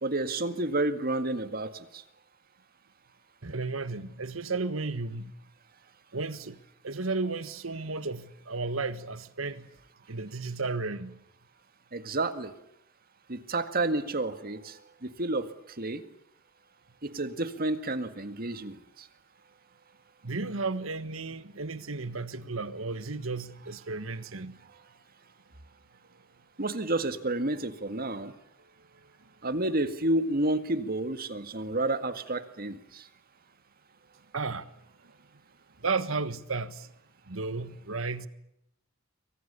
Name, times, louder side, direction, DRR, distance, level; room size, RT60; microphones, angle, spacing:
voice 1, 0.0-2.0 11.9-12.5 13.3-15.5 15.8-16.0 17.0-18.8 26.6-28.3 29.4-33.0, right 2 dB, 45° right, 1.9 m, -30 dB
voice 2, 3.4-5.3 6.1-9.7 10.1-11.2 20.2-24.6 28.9-29.3 34.3-34.7 35.8-36.9 37.3-38.3, right 3 dB, 85° right, 1.5 m, -34 dB
28.5 x 24.0 x 6.9 m
head